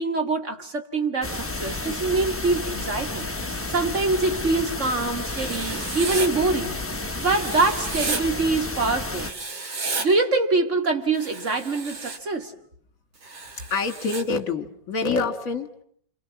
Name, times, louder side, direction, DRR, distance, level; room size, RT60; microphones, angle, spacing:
voice 1, 0.0-3.3 3.7-6.7 7.2-9.3 10.0-12.5, right 3 dB, 35° right, 5 dB, 2.6 m, -24 dB
sound 1, 1.2-9.3, left 2 dB, 10° left, 0.8 m, -31 dB
Writing, 5.3-6.3 7.2-8.2 9.2-10.1 11.1-12.2 13.2-14.2, right 3 dB, 85° right, 3.7 m, -32 dB
voice 2, 13.7-15.8, left 4 dB, 45° left, 8 dB, 2.4 m, -26 dB
29.0 x 27.0 x 7.2 m, 0.64 s
omnidirectional pair, 2.1 m